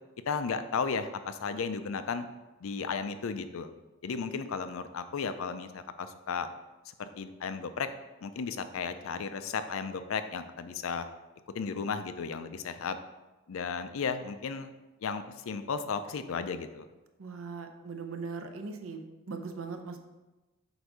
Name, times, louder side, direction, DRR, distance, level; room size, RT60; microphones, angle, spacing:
voice 1, 0.3-2.3 2.6-3.7 4.0-6.5 7.0-7.9 8.2-11.1 11.5-13.0 13.5-14.7 15.0-16.9, left 5 dB, 75° left, 10 dB, 0.4 m, -34 dB
voice 2, 17.2-20.0, right 4 dB, 70° right, 6 dB, 0.7 m, -40 dB
7.9 x 2.7 x 4.7 m, 1.1 s
head